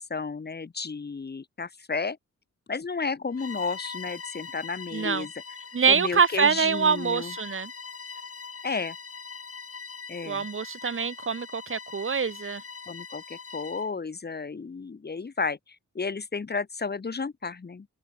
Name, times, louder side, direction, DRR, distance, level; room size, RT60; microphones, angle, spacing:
voice 1, 0.0-2.2 2.7-5.3 5.9-7.3 8.6-9.0 10.1-10.5 12.9-17.9, left 4 dB, 35° left, 1.3 m, -32 dB
Bowed string instrument, 3.3-13.9, left 5 dB, 50° left, 3.8 m, -42 dB
voice 2, 4.9-5.3 5.7-7.7 10.2-12.6, right 6 dB, 45° right, 1.1 m, -25 dB
wide cardioid pair, 175°, 30 cm